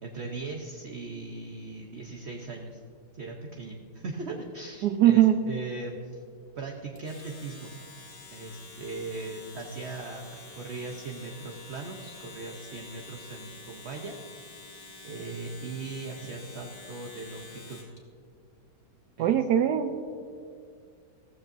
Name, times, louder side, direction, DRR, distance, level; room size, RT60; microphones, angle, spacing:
voice 1, 0.0-2.8 3.1-6.1 6.6-7.7 8.3-14.2 15.0-17.8 19.2-19.4, right 3 dB, 50° right, 1 dB, 1.0 m, -39 dB
voice 2, 4.8-5.4 19.2-19.9, right 11 dB, 75° right, 8 dB, 1.1 m, -21 dB
Domestic sounds home sounds, 7.0-18.0, left 3 dB, 55° left, 2.3 m, -48 dB
15.0 x 14.5 x 2.6 m, 2.3 s
omnidirectional pair, 1.8 m